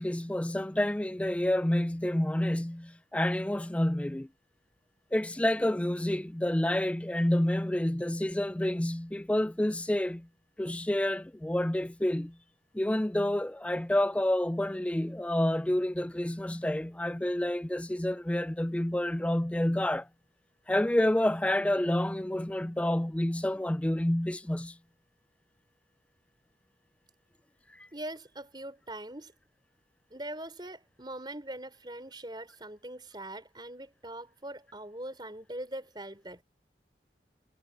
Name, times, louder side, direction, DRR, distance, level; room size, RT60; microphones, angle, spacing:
voice 1, 0.0-4.3 5.1-10.3 10.6-12.4 12.7-20.1 20.7-24.8 27.8-27.9, left 1 dB, 5° left, 0.3 m, -29 dB
voice 2, 27.9-29.3 30.1-36.4, right 1 dB, 25° right, 5.1 m, -42 dB
head